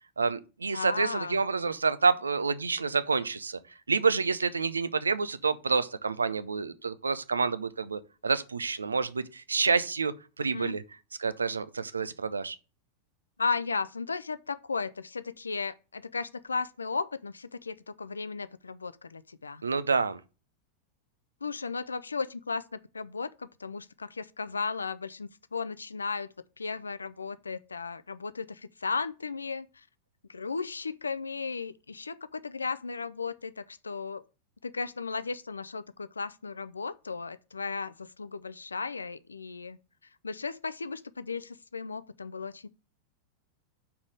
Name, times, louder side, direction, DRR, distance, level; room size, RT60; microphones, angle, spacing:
voice 1, 0.2-3.6 3.9-10.8 11.2-12.6 19.6-20.2, right 4 dB, 75° right, 0.6 m, -28 dB
voice 2, 0.7-1.4 10.5-10.8 13.4-19.6 21.4-29.7 30.3-34.2 34.6-39.8 40.2-42.7, left 4 dB, 75° left, 0.4 m, -35 dB
5.5 x 4.7 x 6.4 m
figure-of-eight pair, 90°, 0 cm